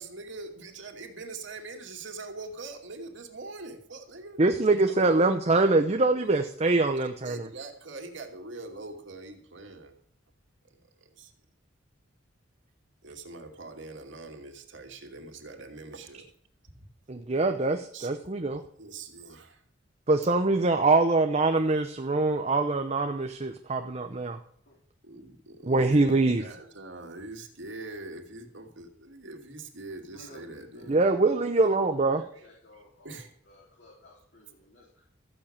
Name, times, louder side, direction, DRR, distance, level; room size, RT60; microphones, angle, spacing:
voice 1, 0.0-4.4 4.8-5.2 7.2-9.9 10.8-11.3 13.0-16.3 17.9-18.1 18.5-19.6 25.0-31.0 32.3-32.4 33.0-33.3, right 3 dB, 70° right, 4 dB, 2.4 m, -43 dB
voice 2, 4.4-7.5 17.1-18.6 20.1-24.4 25.7-26.5 30.9-32.2, right 3 dB, 35° right, 5 dB, 0.8 m, -24 dB
voice 3, 30.1-31.7 32.0-35.1, left 1 dB, 65° left, -4 dB, 3.8 m, -54 dB
14.5 x 6.6 x 8.7 m, 0.63 s
head